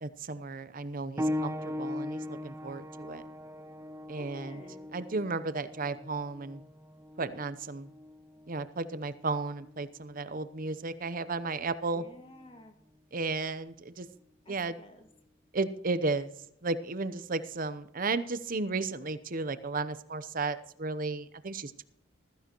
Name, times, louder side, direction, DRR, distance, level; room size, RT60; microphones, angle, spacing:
voice 1, 0.0-3.2 4.1-4.6 4.9-6.6 7.2-7.9 8.5-12.0 13.1-14.1 14.5-14.8 15.5-16.3 16.6-21.8, right 3 dB, 45° right, 13 dB, 0.8 m, -34 dB
sound 1, 1.2-11.4 12.3-12.5 13.2-13.3, left 1 dB, 15° right, 0.5 m, -40 dB
voice 2, 4.2-4.9 11.9-12.8 14.4-15.1, left 1 dB, 30° left, 4 dB, 2.0 m, -51 dB
15.5 x 15.0 x 3.0 m, 0.75 s
head